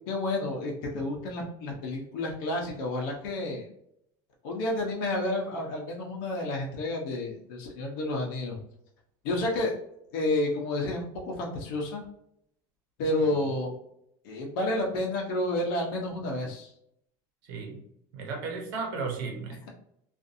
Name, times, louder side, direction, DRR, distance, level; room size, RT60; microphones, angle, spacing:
voice 1, 0.1-3.7 4.4-8.6 9.2-9.7 10.1-12.0 13.0-13.7 14.2-16.7, left 1 dB, 70° left, -2 dB, 0.7 m, -30 dB
voice 2, 17.4-17.9 18.1-19.7, right 4 dB, 70° right, 1 dB, 0.9 m, -35 dB
2.5 x 2.5 x 2.6 m, 0.74 s
cardioid pair, 180°, 11 cm